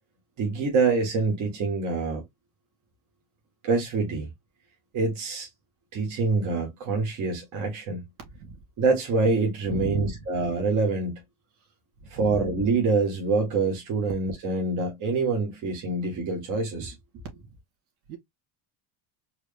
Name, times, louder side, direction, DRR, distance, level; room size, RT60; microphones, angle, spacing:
voice 1, 0.4-2.2 3.6-4.3 4.9-5.5 5.9-8.0 8.8-11.2 12.1-16.9, right 3 dB, 40° right, 1.5 m, -25 dB
voice 2, 8.3-8.6 9.6-10.2 11.6-11.7 12.0-12.5 17.3-17.6 18.1-18.2, right 5 dB, 60° right, 2.1 m, -36 dB
4.6 x 2.1 x 3.3 m
cardioid pair, 155°, 47 cm